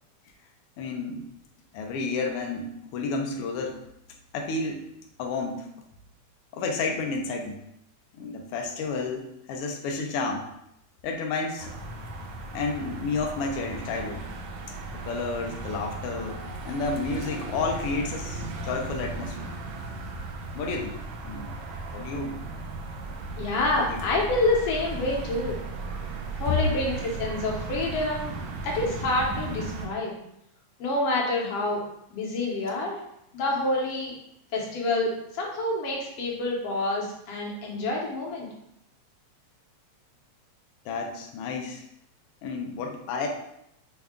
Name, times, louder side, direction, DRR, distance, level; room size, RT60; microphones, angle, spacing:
voice 1, 0.8-1.3 1.7-3.8 4.3-4.8 5.2-5.7 6.5-7.6 8.1-10.5 11.0-11.7 12.5-14.2 15.0-19.5 20.5-21.0 21.2-21.6 21.9-22.4 23.7-24.0 26.5-26.6 27.0-27.1 40.8-41.8 42.4-43.3, left 4 dB, 90° left, 2 dB, 1.2 m, -31 dB
sound 1, 11.6-29.9, right 3 dB, 80° right, 1.8 m, -36 dB
voice 2, 23.4-25.6 26.4-28.3 28.6-30.1 30.8-31.8 32.1-33.0 33.3-34.1 34.5-38.5, left 2 dB, 65° left, -2 dB, 1.7 m, -27 dB
6.3 x 2.3 x 3.6 m, 0.78 s
omnidirectional pair, 3.3 m